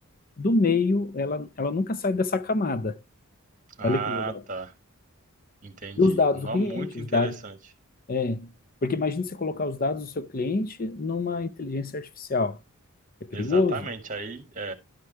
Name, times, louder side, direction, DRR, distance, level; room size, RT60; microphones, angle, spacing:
voice 1, 0.4-2.9 3.8-4.2 6.0-7.3 8.1-8.5 8.8-12.6 13.4-13.8, left 3 dB, 40° left, 0.6 m, -26 dB
voice 2, 3.8-4.7 5.6-7.6 13.3-14.7, right 4 dB, 35° right, 1.6 m, -35 dB
11.5 x 4.9 x 4.4 m
head